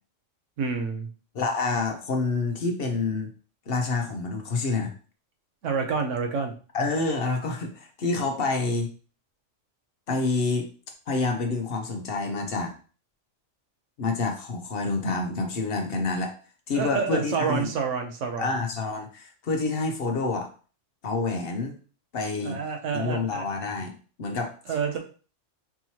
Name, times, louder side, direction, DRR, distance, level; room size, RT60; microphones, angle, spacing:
voice 1, 0.6-1.1 5.6-6.5 16.7-18.5 22.4-23.5 24.7-25.0, right 5 dB, 80° right, 4 dB, 1.1 m, -28 dB
voice 2, 1.3-3.3 3.7-4.9 6.7-8.9 10.1-10.7 11.1-12.7 14.0-16.3 16.7-17.7 18.4-20.5 21.0-21.8 22.1-22.6 22.9-24.5, left 3 dB, 55° left, 3 dB, 0.8 m, -28 dB
4.5 x 2.9 x 2.8 m, 0.39 s
omnidirectional pair, 1.3 m